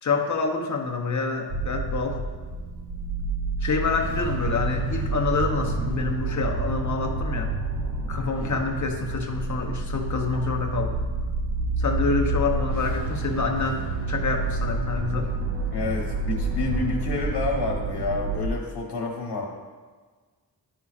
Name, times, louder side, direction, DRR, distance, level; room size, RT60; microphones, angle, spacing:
voice 1, 0.0-2.2 3.6-7.6 8.1-11.0 11.8-15.3, left 4 dB, 45° left, 3 dB, 0.7 m, -27 dB
sound 1, 1.5-18.5, right 3 dB, 75° right, 0.7 m, -29 dB
voice 2, 15.7-19.5, left 3 dB, 85° left, 0 dB, 1.2 m, -29 dB
10.5 x 5.6 x 2.4 m, 1.4 s
wide cardioid pair, 170°, 40 cm